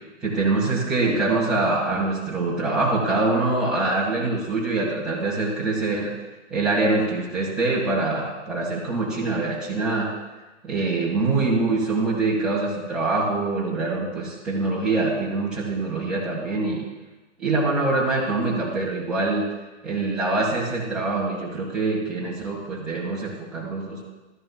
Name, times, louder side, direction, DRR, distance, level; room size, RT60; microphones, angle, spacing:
voice 1, 0.2-6.1 6.5-10.2 10.6-16.8 17.4-19.5 19.8-24.0, right 3 dB, ahead, -8 dB, 1.2 m, -24 dB
12.5 x 10.5 x 2.2 m, 1.2 s
hypercardioid pair, 170°, 38 cm